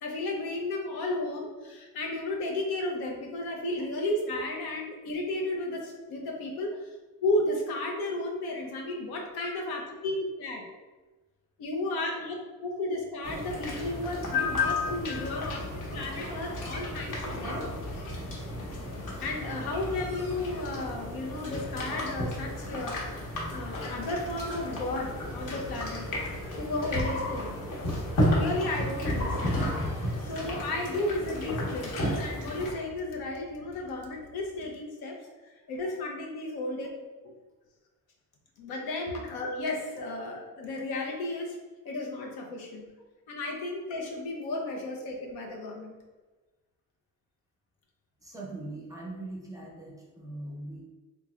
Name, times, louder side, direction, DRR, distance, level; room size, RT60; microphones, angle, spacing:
voice 1, 0.0-6.7 7.2-10.6 11.6-17.7 19.2-26.1 26.4-27.6 27.8-35.2 35.7-36.9 37.2-37.3 38.6-41.6 41.8-42.9 43.3-45.9, left 2 dB, 85° left, 0 dB, 0.9 m, -33 dB
sound 1, 13.2-32.7, equal, 55° left, 1.1 m, -33 dB
sound 2, 15.0-34.6, left 2 dB, 35° left, 0.6 m, -50 dB
voice 2, 48.2-50.8, right 2 dB, 10° right, -3 dB, 0.5 m, -41 dB
3.7 x 3.1 x 2.4 m, 1.2 s
cardioid pair, 165°, 36 cm